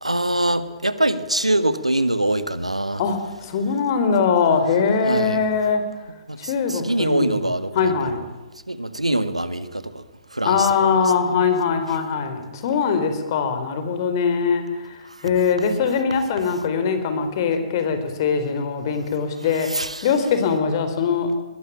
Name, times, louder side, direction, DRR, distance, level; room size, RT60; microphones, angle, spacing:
voice 1, 0.0-3.0 5.0-5.4 6.3-8.1 8.7-10.0 10.3-11.0 15.0-15.2 19.5-20.1, right 1 dB, 85° right, 13 dB, 1.6 m, -24 dB
voice 2, 3.0-5.8 6.4-7.3 7.7-8.2 10.4-19.7 20.0-21.3, left 5 dB, 40° left, 8 dB, 4.3 m, -22 dB
22.0 x 21.5 x 8.8 m, 1.1 s
figure-of-eight pair, 120°, 3 cm